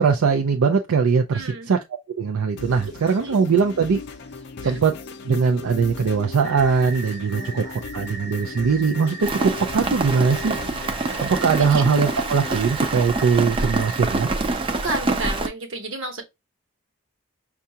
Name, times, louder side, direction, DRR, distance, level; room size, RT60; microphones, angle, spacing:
voice 1, 0.0-1.8 2.2-4.0 4.6-4.9 5.2-7.6 7.9-10.5 11.2-14.3, right 5 dB, 80° right, 0.4 m, -21 dB
voice 2, 1.3-1.7 3.2-3.4 4.6-4.8 7.3-7.8 11.6-11.8 14.7-16.2, right 2 dB, 60° right, 1.1 m, -31 dB
sound 1, 2.6-12.6, left 4 dB, 50° left, 0.5 m, -37 dB
sound 2, 6.4-14.2, right 3 dB, 40° right, 1.0 m, -39 dB
Rain, 9.2-15.5, right 3 dB, 25° right, 0.4 m, -26 dB
5.5 x 2.4 x 2.7 m
head